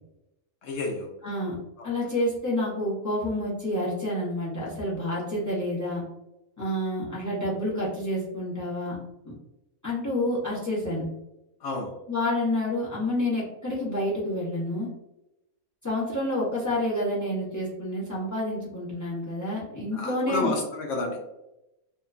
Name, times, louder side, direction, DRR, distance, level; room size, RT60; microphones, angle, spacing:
voice 1, 0.6-1.1 1.8-1.9 11.6-11.9 19.9-21.2, left 2 dB, 70° left, 1 dB, 0.8 m, -30 dB
voice 2, 1.2-1.5 1.8-6.0 6.6-9.0 9.2-9.3 9.8-11.1 12.1-14.9 15.8-20.5, left 1 dB, 20° left, -6 dB, 0.5 m, -29 dB
2.8 x 2.2 x 2.4 m, 0.91 s
omnidirectional pair, 1.5 m